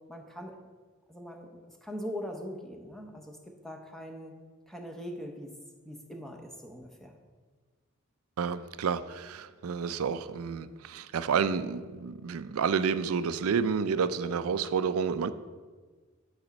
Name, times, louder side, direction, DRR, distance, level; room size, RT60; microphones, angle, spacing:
voice 1, 0.1-0.6 1.1-4.4 4.7-5.5 5.8-7.2, equal, ahead, 2 dB, 0.8 m, -41 dB
voice 2, 8.4-15.3, right 6 dB, 80° right, 13 dB, 0.4 m, -30 dB
10.5 x 4.1 x 5.2 m, 1.5 s
head